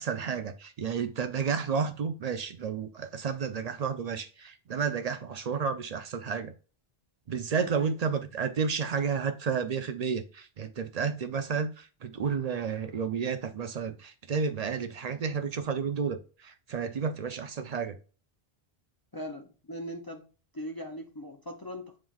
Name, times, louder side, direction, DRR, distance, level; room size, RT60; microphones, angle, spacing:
voice 1, 0.0-6.5 7.3-18.0, right 6 dB, 50° right, 0.5 m, -31 dB
voice 2, 7.6-7.9 19.1-20.3 20.5-22.0, equal, 35° left, 0.4 m, -40 dB
7.3 x 3.1 x 2.3 m
omnidirectional pair, 1.1 m